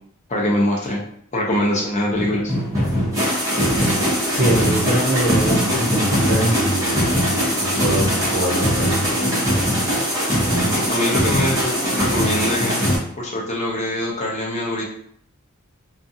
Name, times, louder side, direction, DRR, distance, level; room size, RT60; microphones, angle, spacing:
voice 1, 0.3-1.0 1.3-2.5 10.5-12.8 13.2-14.8, left 1 dB, 30° left, -3 dB, 0.5 m, -23 dB
sound 1, 2.1-13.0, equal, 15° right, 0.9 m, -21 dB
voice 2, 4.3-7.0 7.6-9.1, right 1 dB, 45° right, -5 dB, 0.9 m, -23 dB
2.5 x 2.4 x 2.6 m, 0.66 s
head